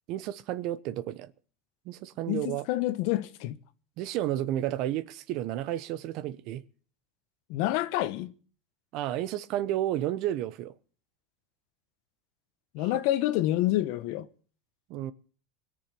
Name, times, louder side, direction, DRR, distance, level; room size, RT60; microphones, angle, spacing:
voice 1, 0.1-1.3 1.8-2.7 4.0-6.6 8.9-10.7 14.9-15.1, right 13 dB, 50° right, 0.9 m, -31 dB
voice 2, 2.3-3.6 7.5-8.3 12.7-14.3, left 15 dB, 60° left, 1.2 m, -28 dB
21.0 x 7.1 x 8.4 m
supercardioid pair, 145°, 0 cm